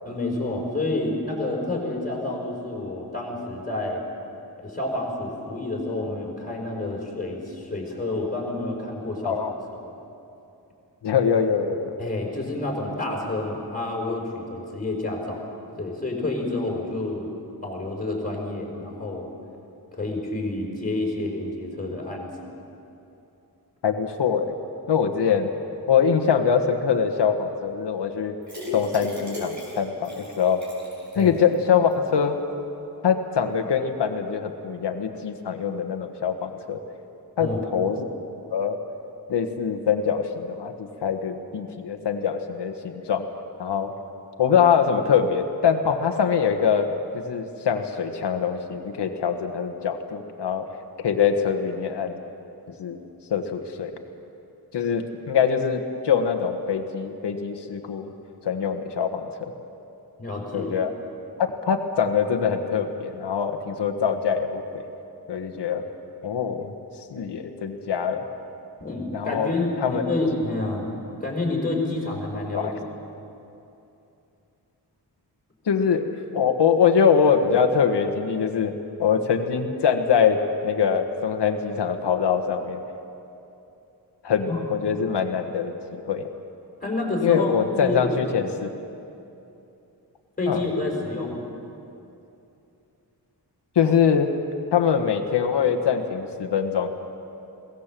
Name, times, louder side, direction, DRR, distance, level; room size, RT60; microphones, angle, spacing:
voice 1, 0.0-4.0 4.6-9.4 12.0-15.4 15.8-17.3 17.6-19.3 19.9-22.5 31.1-31.4 37.4-37.6 60.2-60.8 68.8-70.9 71.2-72.7 84.4-84.6 86.8-87.5 87.8-88.2 90.4-91.4, left 2 dB, 20° left, -2 dB, 5.1 m, -29 dB
voice 2, 11.0-11.9 23.8-24.5 24.9-25.5 25.9-28.3 28.7-30.6 31.2-32.4 33.0-36.8 37.4-38.0 38.5-38.8 39.3-43.2 43.6-43.9 44.4-50.7 51.0-52.2 52.8-53.0 53.3-54.0 54.7-58.1 58.4-59.5 60.5-60.9 61.4-64.8 65.3-65.8 66.2-66.7 67.1-68.2 69.1-69.5 69.8-70.0 72.5-72.7 75.7-76.1 76.3-78.7 79.0-82.8 84.2-86.3 87.2-88.7 90.5-90.7 93.7-94.3 94.7-96.9, left 7 dB, 90° left, 6 dB, 1.6 m, -23 dB
sound 1, 28.4-31.5 31.9-32.0 32.3-32.4, left 2 dB, 45° right, 6.5 m, -37 dB
22.0 x 17.5 x 7.6 m, 2.8 s
wide cardioid pair, 140°, 40 cm